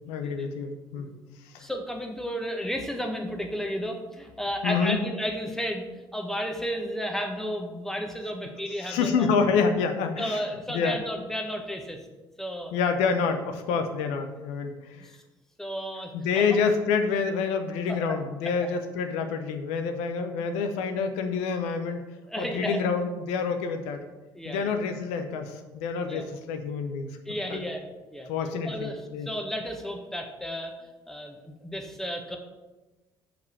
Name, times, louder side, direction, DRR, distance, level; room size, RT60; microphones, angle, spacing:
voice 1, 0.1-1.1 1.5-1.7 4.6-5.0 8.8-10.4 10.7-11.0 12.7-15.1 16.1-22.0 22.4-24.0 24.4-27.2 27.5-27.6 28.3-29.3, left 5 dB, 70° left, 6 dB, 0.8 m, -27 dB
voice 2, 1.6-9.3 10.2-12.1 12.4-12.7 15.0-15.2 15.6-16.6 17.9-18.2 22.3-22.8 24.3-24.7 26.0-26.2 27.2-27.8 28.1-28.3 28.6-32.4, equal, 5° left, 3 dB, 1.4 m, -33 dB
5.3 x 5.1 x 6.4 m, 1.1 s
figure-of-eight pair, 55°, 12 cm